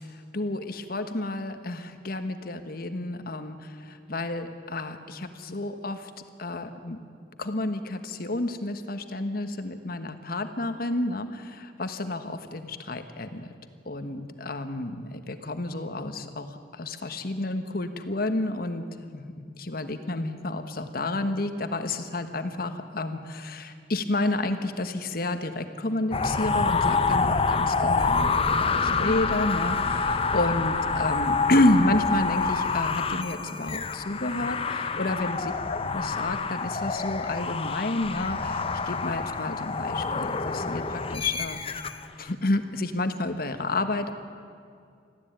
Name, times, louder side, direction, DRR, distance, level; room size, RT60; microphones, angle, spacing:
voice 1, 0.1-6.1 6.4-7.0 7.4-13.5 13.8-41.8 42.2-44.1, left 2 dB, 55° left, 8 dB, 1.3 m, -30 dB
sound 1, 26.1-42.1, left 4 dB, 35° left, 0.8 m, -27 dB
21.5 x 14.5 x 9.0 m, 2.3 s
head